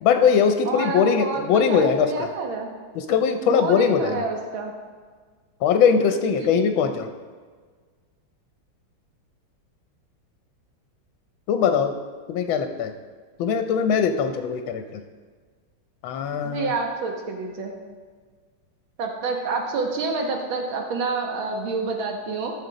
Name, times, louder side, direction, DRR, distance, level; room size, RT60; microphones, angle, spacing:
voice 1, 0.0-2.3 2.9-4.2 5.6-7.1 11.5-11.9 12.3-12.9 13.4-15.0 16.0-16.7, left 6 dB, 80° left, 7 dB, 1.4 m, -21 dB
voice 2, 0.7-2.7 3.5-4.7 6.2-6.5 16.4-17.7 19.0-22.5, right 4 dB, 80° right, 1 dB, 2.0 m, -28 dB
12.5 x 6.4 x 4.0 m, 1.6 s
omnidirectional pair, 2.2 m